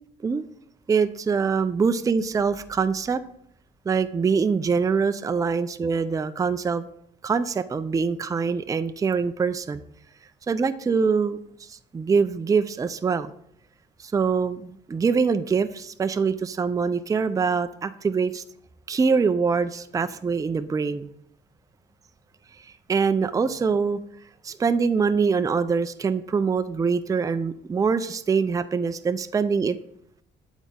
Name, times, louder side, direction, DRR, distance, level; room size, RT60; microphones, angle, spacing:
voice 1, 0.9-3.2 3.9-6.9 7.2-9.8 10.5-11.4 11.7-13.3 14.0-18.4 18.9-21.1 22.9-24.0 24.4-29.8, right 5 dB, 15° right, 11 dB, 0.3 m, -24 dB
8.3 x 4.0 x 3.6 m, 0.71 s
cardioid pair, 90°, 20 cm